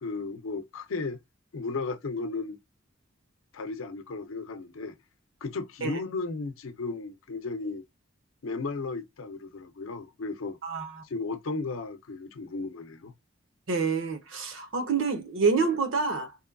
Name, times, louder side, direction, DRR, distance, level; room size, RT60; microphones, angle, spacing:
voice 1, 0.0-1.2 1.5-2.6 3.5-5.0 5.4-7.9 8.4-10.6 11.1-13.1, left 3 dB, 85° left, 0.5 m, -34 dB
voice 2, 10.6-11.0 13.7-16.4, right 4 dB, 75° right, 0.8 m, -27 dB
3.0 x 2.2 x 2.3 m
head